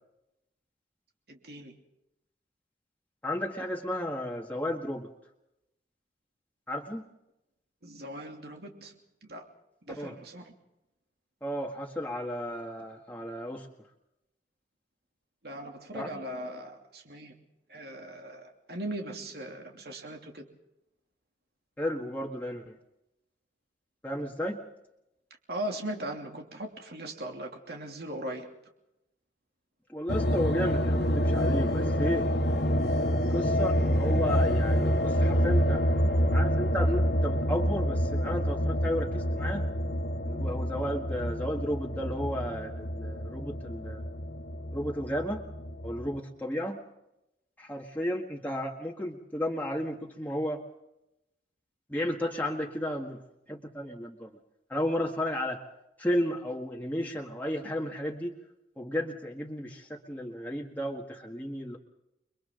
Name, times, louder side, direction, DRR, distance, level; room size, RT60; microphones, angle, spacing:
voice 1, 1.3-1.7 7.8-8.9 9.2-9.4 9.8-10.5 15.4-17.3 17.7-20.5 25.5-28.5, right 1 dB, 60° right, 2 dB, 2.9 m, -39 dB
voice 2, 3.2-5.1 6.7-7.0 10.0-10.1 11.4-13.7 15.9-16.1 21.8-22.8 24.0-24.6 29.9-32.3 33.3-35.8 36.3-39.7 40.3-44.0 44.7-45.4 45.8-46.8 47.6-50.6 51.9-53.2 53.5-54.3 54.7-55.6 56.0-58.4 58.8-61.8, equal, 10° left, -1 dB, 1.8 m, -33 dB
sound 1, 30.1-46.2, equal, 70° left, 2.2 m, -27 dB
30.0 x 23.0 x 3.9 m, 0.88 s
head